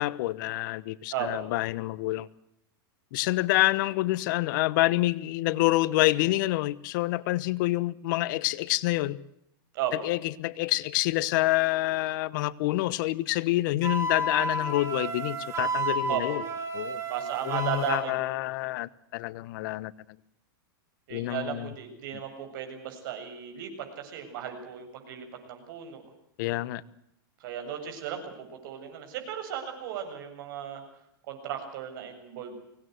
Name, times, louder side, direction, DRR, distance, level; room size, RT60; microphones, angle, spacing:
voice 1, 0.0-2.3 3.1-9.2 10.0-16.4 16.7-17.0 17.4-19.9 21.1-21.7 26.4-26.8, left 18 dB, 60° left, 19 dB, 1.1 m, -27 dB
Wind instrument woodwind instrument, 13.8-18.0, right 2 dB, 20° right, 4.7 m, -31 dB
voice 2, 17.1-18.1 21.1-23.7 24.0-26.0 27.4-30.8 31.3-32.5, right 10 dB, 60° right, 5 dB, 7.6 m, -35 dB
24.5 x 18.5 x 8.0 m, 0.78 s
supercardioid pair, 140°, 12 cm